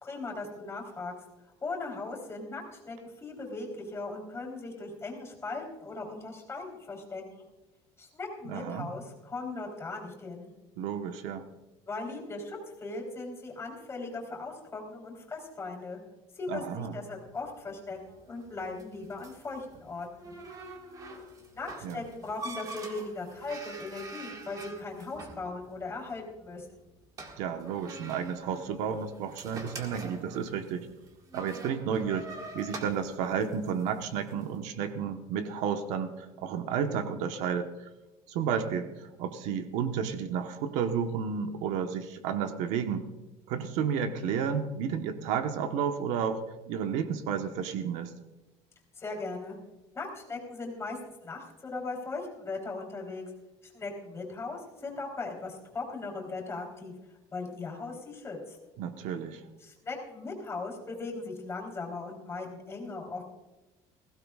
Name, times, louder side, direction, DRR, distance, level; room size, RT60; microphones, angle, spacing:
voice 1, 0.0-1.1 1.6-7.5 8.0-10.5 11.9-16.0 16.3-20.3 21.5-26.8 49.0-49.6 49.9-53.2 53.6-56.9 57.3-58.6 59.6-63.2, left 3 dB, 20° left, 0 dB, 3.8 m, -38 dB
voice 2, 8.5-8.9 10.8-11.5 16.5-16.9 21.8-22.0 27.4-30.9 31.3-32.3 32.5-37.7 38.3-43.0 43.5-48.1 58.8-59.4, right 7 dB, 80° right, 7 dB, 1.2 m, -32 dB
sound 1, 17.2-34.5, right 2 dB, 30° right, 1.9 m, -46 dB
20.5 x 16.0 x 2.4 m, 1.1 s
cardioid pair, 140°, 12 cm